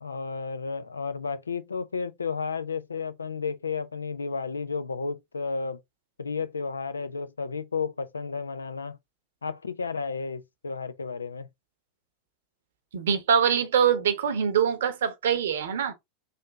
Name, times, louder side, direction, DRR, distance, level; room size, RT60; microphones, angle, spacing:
voice 1, 0.0-5.8 6.2-9.0 9.4-11.5, left 5 dB, 85° left, 0.4 m, -32 dB
voice 2, 12.9-15.9, right 7 dB, 70° right, 0.8 m, -24 dB
3.5 x 2.6 x 3.7 m
figure-of-eight pair, 85°, 0 cm